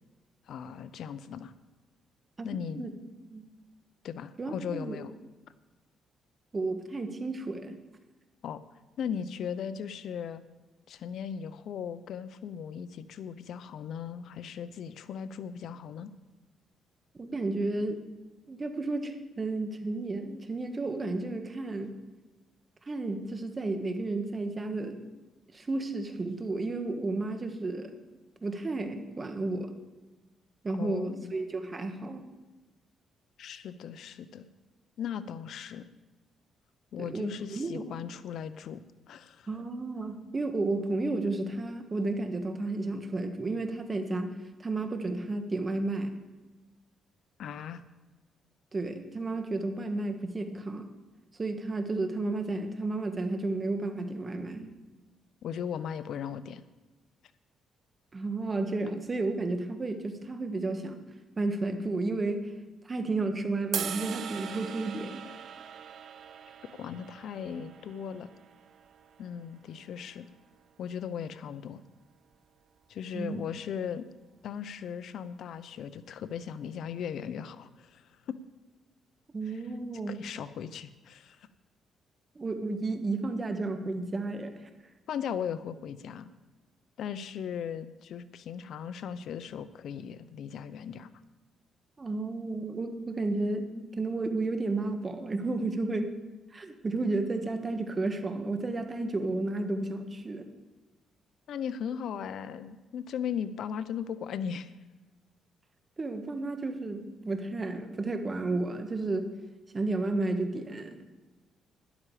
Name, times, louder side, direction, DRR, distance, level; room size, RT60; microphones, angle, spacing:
voice 1, 0.5-1.5 2.4-2.9 4.0-5.1 8.4-8.6 9.0-10.4 10.9-16.1 30.8-31.3 33.4-34.5 35.0-35.9 36.9-38.8 39.1-39.5 47.4-47.8 55.4-56.6 66.7-68.3 69.2-70.3 70.8-71.8 72.9-74.1 74.4-78.4 79.5-79.6 80.1-81.5 85.1-86.3 87.0-91.1 101.5-104.7, left 8 dB, 70° left, 14 dB, 0.6 m, -37 dB
voice 2, 4.4-5.0 6.5-7.7 17.2-18.0 18.5-21.9 22.9-25.0 25.5-28.0 28.4-29.7 30.6-32.2 37.0-37.9 39.5-44.3 44.6-46.1 48.7-50.9 51.4-54.7 58.1-61.0 61.4-62.5 62.8-65.2 73.1-73.4 79.3-80.2 82.3-84.5 92.0-96.1 96.5-100.5 106.0-109.3 109.7-111.0, right 2 dB, 30° right, 7 dB, 1.5 m, -32 dB
sound 1, 63.7-70.0, right 8 dB, 60° right, 0.8 m, -41 dB
12.5 x 11.0 x 4.9 m, 1.2 s
cardioid pair, 90°, 0 cm